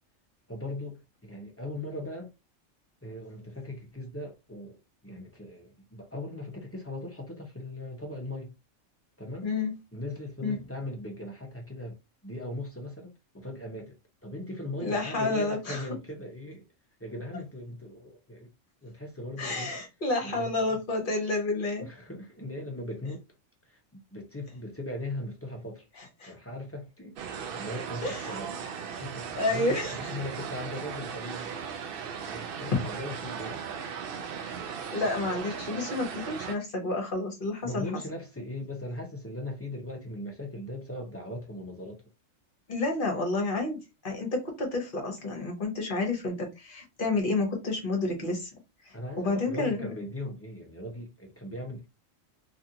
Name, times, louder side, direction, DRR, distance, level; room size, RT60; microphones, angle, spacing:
voice 1, 0.5-2.3 3.0-8.5 9.2-9.5 9.9-12.0 12.2-14.0 14.2-16.6 17.0-18.5 18.8-19.8 20.2-20.8 21.8-23.3 23.7-25.9 26.3-28.5 29.0-31.5 32.2-33.6 37.6-42.0 48.9-51.9, left 1 dB, 20° left, 0.3 m, -39 dB
voice 2, 9.4-9.7 10.4-10.6 14.8-15.8 19.4-21.9 26.0-26.3 28.0-28.3 29.4-29.9 32.7-32.8 34.5-37.8 42.7-48.5 48.8-49.9, left 2 dB, 45° left, 1.1 m, -30 dB
sound 1, 27.2-36.6, right 7 dB, 60° right, 0.6 m, -37 dB
3.0 x 2.5 x 2.7 m
omnidirectional pair, 1.3 m